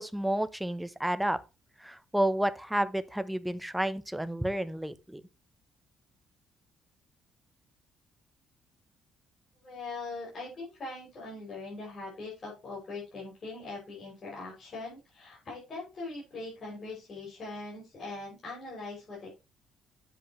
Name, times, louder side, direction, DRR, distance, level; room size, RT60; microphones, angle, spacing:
voice 1, 0.0-1.4 1.8-5.2, right 1 dB, 5° right, 0.8 m, -30 dB
voice 2, 9.6-19.3, left 3 dB, 40° left, 6.4 m, -41 dB
9.9 x 8.0 x 3.1 m
cardioid pair, 125°, 0 cm